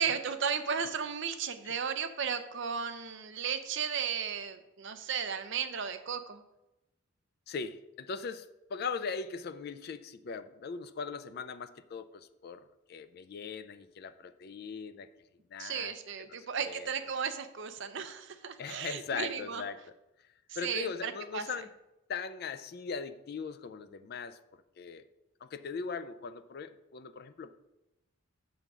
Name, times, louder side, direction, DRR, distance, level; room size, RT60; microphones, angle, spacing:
voice 1, 0.0-6.4 15.6-19.6 20.6-21.5, right 7 dB, 55° right, 9 dB, 0.5 m, -35 dB
voice 2, 7.5-15.1 15.5-15.9 16.2-16.4 16.6-16.9 18.6-19.9 20.6-21.7 22.1-25.1 25.4-27.5, left 5 dB, 45° left, 11 dB, 0.3 m, -40 dB
6.8 x 3.8 x 6.0 m, 0.94 s
head